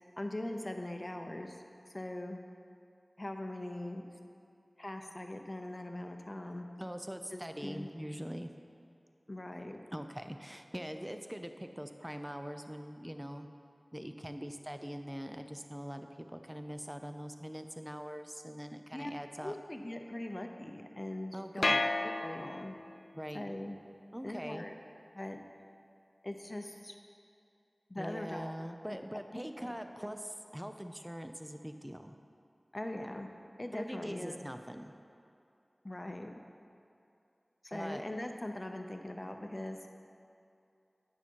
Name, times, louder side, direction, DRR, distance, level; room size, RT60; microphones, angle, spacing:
voice 1, 0.2-1.6 1.9-2.4 3.2-4.1 4.8-6.7 7.3-7.9 9.3-9.8 18.9-19.1 19.4-22.7 23.3-23.8 24.2-24.7 25.1-25.4 26.2-26.9 27.9-28.5 28.9-29.0 29.3-29.7 30.0-30.1 32.7-33.3 33.6-34.4 35.8-36.3 37.6-39.8, left 1 dB, 35° left, 4 dB, 0.7 m, -41 dB
voice 2, 6.8-8.5 9.9-13.5 13.9-19.5 21.3-21.8 23.1-23.4 24.1-24.7 28.0-32.2 33.7-34.9 37.7-38.0, equal, 10° right, 7 dB, 0.5 m, -42 dB
sound 1, 21.6-23.0, left 2 dB, 65° left, 0.3 m, -32 dB
9.5 x 5.9 x 4.5 m, 2.6 s
wide cardioid pair, 50°, 0 cm